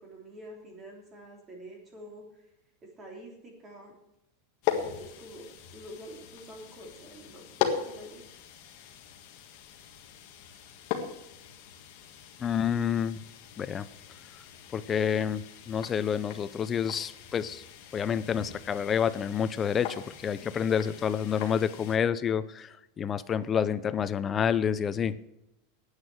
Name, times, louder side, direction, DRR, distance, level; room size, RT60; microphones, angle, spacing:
voice 1, 0.0-2.5 2.8-3.9 4.7-5.5 5.7-8.2, equal, 20° right, 1 dB, 3.2 m, -47 dB
sound 1, 4.6-22.0, left 9 dB, 40° left, 1.7 m, -39 dB
voice 2, 12.4-13.2 13.6-13.8 14.7-17.6 17.9-25.1, left 8 dB, 15° left, 14 dB, 0.5 m, -28 dB
9.7 x 8.9 x 7.6 m, 0.88 s
supercardioid pair, 170°, 0 cm